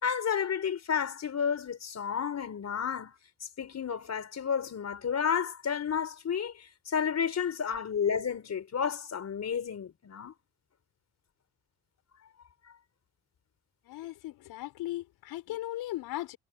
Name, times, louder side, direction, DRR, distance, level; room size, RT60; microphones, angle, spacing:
voice 1, 0.0-3.1 3.6-10.3, left 7 dB, 45° left, 4.8 m, -31 dB
voice 2, 13.8-16.4, left 16 dB, 85° left, 5.5 m, -37 dB
cardioid pair, 105°, 36 cm